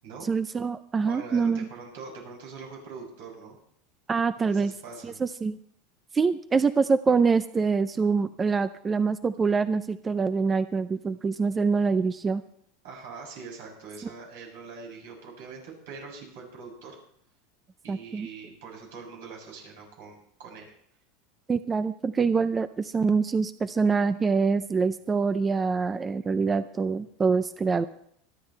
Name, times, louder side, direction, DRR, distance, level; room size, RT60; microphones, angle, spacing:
voice 1, 0.2-1.7 4.1-4.7 5.0-5.6 6.1-12.4 17.9-18.3 21.5-27.8, right 5 dB, 20° right, 12 dB, 0.4 m, -25 dB
voice 2, 1.1-3.6 4.4-5.2 12.8-17.0 17.8-20.7, right 4 dB, 80° right, -1 dB, 7.4 m, -43 dB
26.5 x 9.6 x 3.3 m, 0.68 s
supercardioid pair, 140°, 0 cm